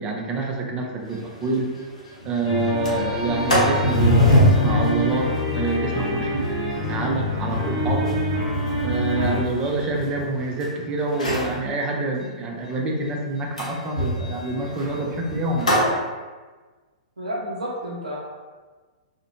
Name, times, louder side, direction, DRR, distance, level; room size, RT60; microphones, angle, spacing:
voice 1, 0.0-1.7 2.2-6.5 6.9-8.1 8.8-15.7, right 3 dB, 25° right, 0 dB, 0.5 m, -27 dB
Sliding door, 1.1-1.2 1.5-1.6 2.0-2.3 2.6-10.6 11.1-11.6 13.6-16.0, left 1 dB, 85° left, 0.8 m, -24 dB
sound 1, 2.4-9.4, left 1 dB, 45° left, 0.9 m, -26 dB
voice 2, 17.2-18.2, equal, 85° right, -5 dB, 0.4 m, -30 dB
2.4 x 2.1 x 2.9 m, 1.4 s
figure-of-eight pair, 110°, 4 cm